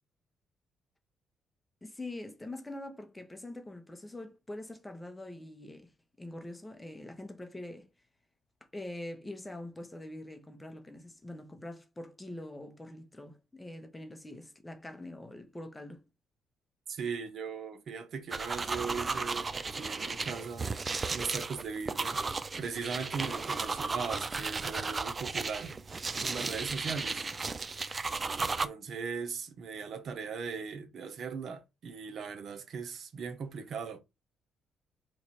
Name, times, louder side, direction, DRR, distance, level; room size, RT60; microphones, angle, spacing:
voice 1, 1.8-5.9 6.2-7.9 8.7-16.0, left 1 dB, 15° left, 0.8 m, -44 dB
voice 2, 16.9-20.7 21.1-22.2 22.6-25.7 26.2-27.3 28.4-34.0, right 5 dB, 60° right, 0.7 m, -39 dB
sound 1, 18.3-28.7, right 4 dB, 30° right, 0.3 m, -34 dB
3.1 x 2.5 x 4.2 m
cardioid pair, 90°, 0 cm